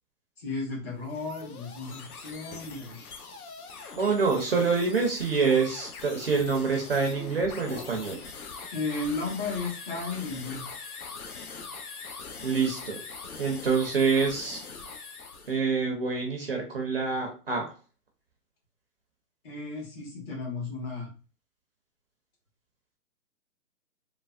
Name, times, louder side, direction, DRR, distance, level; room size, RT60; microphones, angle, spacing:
voice 1, 0.4-3.0 8.7-10.7 19.4-21.1, left 3 dB, 35° left, -2 dB, 1.3 m, -34 dB
sound 1, 0.9-15.6, left 4 dB, 65° left, 0.7 m, -42 dB
voice 2, 4.0-8.2 12.4-13.0 13.4-14.6 15.5-17.8, right 5 dB, 40° right, 1 dB, 0.5 m, -26 dB
3.2 x 2.1 x 2.3 m, 0.35 s
figure-of-eight pair, 140°, 48 cm